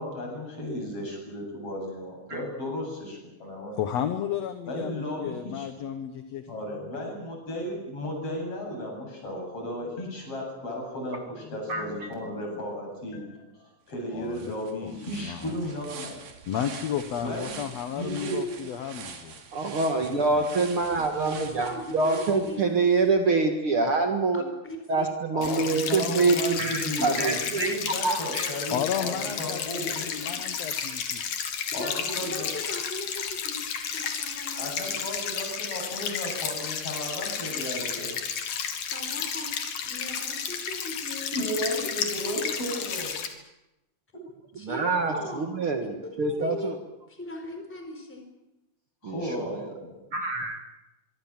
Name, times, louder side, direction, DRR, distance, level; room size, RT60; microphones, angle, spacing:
voice 1, 0.0-3.8 4.7-5.7 6.5-16.2 17.2-17.7 18.0-18.5 25.3-30.0 31.7-32.5 34.6-38.3 41.3-43.2 49.0-49.9, left 1 dB, 45° left, 0 dB, 9.1 m, -34 dB
voice 2, 3.8-6.4 14.1-14.6 14.8-15.6 16.5-19.4 20.0-20.4 28.7-31.2, left 9 dB, 60° left, 8 dB, 2.2 m, -33 dB
sound 1, 13.9-14.0 14.3-23.1, right 6 dB, 85° right, 4.3 m, -45 dB
voice 3, 19.5-24.4 24.9-27.7 28.0-28.5 44.6-46.8 49.0-49.7 50.1-50.6, right 3 dB, 45° right, 4 dB, 2.3 m, -25 dB
voice 4, 21.3-22.7 24.3-25.1 25.5-26.0 26.3-26.6 29.7-29.9 30.2-30.4 30.6-30.7 31.8-35.0 38.9-39.5 39.8-41.7 44.6-45.5 45.8-46.7 47.1-48.3, left 2 dB, 5° left, 4 dB, 4.2 m, -39 dB
sound 2, 25.4-43.3, left 7 dB, 85° left, 3.7 m, -32 dB
24.5 x 24.5 x 7.4 m, 0.94 s
omnidirectional pair, 3.7 m